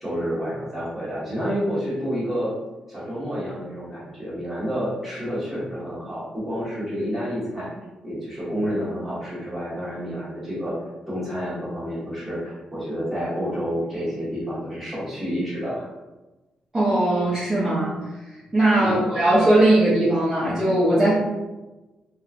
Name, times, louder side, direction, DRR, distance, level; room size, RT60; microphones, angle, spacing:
voice 1, 0.0-2.5 2.9-7.7 8.0-10.8 11.1-15.9 18.8-19.0, equal, 5° right, -10 dB, 1.4 m, -29 dB
voice 2, 16.7-18.0 18.5-21.1, right 1 dB, 20° right, -10 dB, 0.7 m, -19 dB
2.8 x 2.3 x 2.4 m, 1.1 s
cardioid pair, 105°, 2 cm